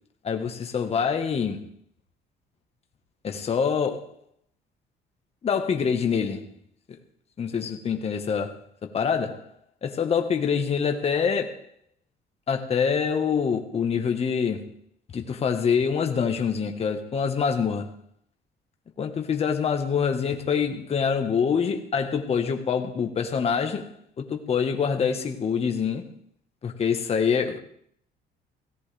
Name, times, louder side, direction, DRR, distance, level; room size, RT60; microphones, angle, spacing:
voice 1, 0.2-1.6 3.2-4.1 5.4-6.5 7.4-9.4 9.8-11.6 12.5-14.7 15.1-17.9 19.0-23.9 24.2-26.1 26.6-27.6, left 6 dB, 35° left, 1.4 m, -25 dB
18.0 x 16.5 x 3.4 m
cardioid pair, 145°, 19 cm